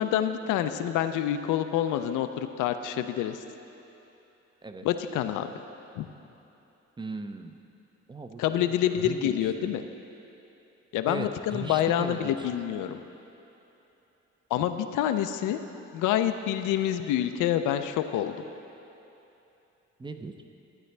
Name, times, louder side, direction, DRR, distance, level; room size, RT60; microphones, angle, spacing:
voice 1, 0.0-3.4 4.8-5.5 6.0-6.1 8.4-9.8 10.9-13.0 14.5-15.6 15.9-18.4, left 11 dB, 85° left, 9 dB, 0.5 m, -27 dB
voice 2, 7.0-7.6 8.1-8.7 9.0-9.7 11.1-12.4 20.0-20.4, right 3 dB, 15° right, 7 dB, 0.5 m, -38 dB
12.0 x 9.2 x 3.3 m, 3.0 s
cardioid pair, 90°, 30 cm